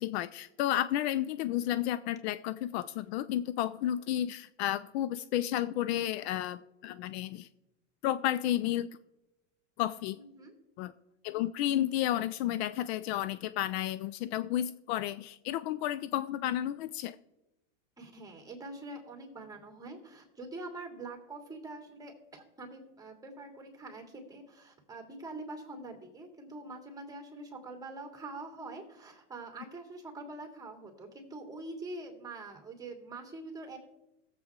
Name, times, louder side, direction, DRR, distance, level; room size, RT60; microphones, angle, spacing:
voice 1, 0.0-7.5 8.0-9.0 9.8-10.2 10.8-10.9 11.2-17.2, left 12 dB, 60° left, 15 dB, 0.5 m, -32 dB
voice 2, 10.1-10.5 18.0-33.8, right 2 dB, 10° right, 3 dB, 2.8 m, -45 dB
18.0 x 7.7 x 3.7 m, 0.93 s
hypercardioid pair, 110°, 37 cm